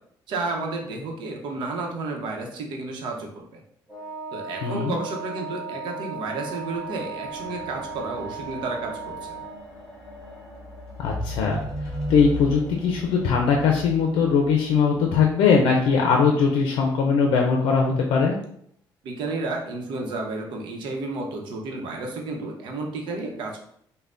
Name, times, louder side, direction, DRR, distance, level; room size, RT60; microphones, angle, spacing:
voice 1, 0.3-3.6 4.3-9.4 19.0-23.6, right 3 dB, 65° right, 1 dB, 0.8 m, -32 dB
Wind instrument woodwind instrument, 3.9-9.6, right 4 dB, 5° right, 0.9 m, -36 dB
voice 2, 4.6-5.0 11.0-11.6 12.1-18.4, left 5 dB, 90° left, 1 dB, 0.5 m, -20 dB
sound 1, 6.5-16.0 16.8-16.9, equal, 10° left, 1.2 m, -37 dB
5.3 x 2.1 x 2.5 m, 0.68 s
cardioid pair, 160°, 9 cm